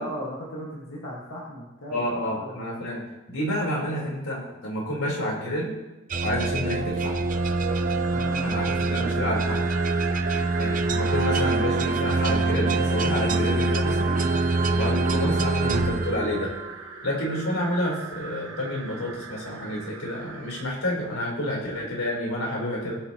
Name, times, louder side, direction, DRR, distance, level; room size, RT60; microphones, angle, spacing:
voice 1, 0.0-2.8 8.1-9.3, equal, 60° left, -5 dB, 2.0 m, -38 dB
voice 2, 1.9-3.0 3.3-5.7 6.2-7.2 8.4-9.6 10.6-14.2 14.7-16.5 17.0-23.0, left 1 dB, 85° left, -3 dB, 4.5 m, -29 dB
sound 1, 6.1-16.8, right 3 dB, 35° right, 0.6 m, -25 dB
sound 2, 7.3-20.6, right 4 dB, 60° right, 1.4 m, -38 dB
20.0 x 8.1 x 3.1 m, 1.0 s
head